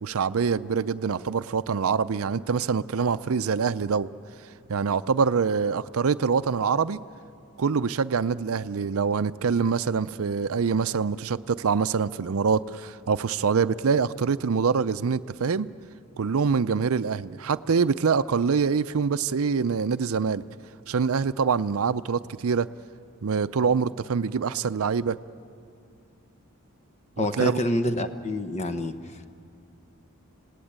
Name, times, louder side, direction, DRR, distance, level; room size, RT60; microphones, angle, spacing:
voice 1, 0.0-4.1 4.7-7.0 7.6-15.7 16.2-20.4 20.9-22.7 23.2-25.2 27.2-27.6, right 5 dB, 75° right, 13 dB, 0.5 m, -25 dB
voice 2, 27.2-28.9, left 1 dB, 30° left, 9 dB, 1.0 m, -27 dB
26.5 x 18.5 x 8.8 m, 2.7 s
head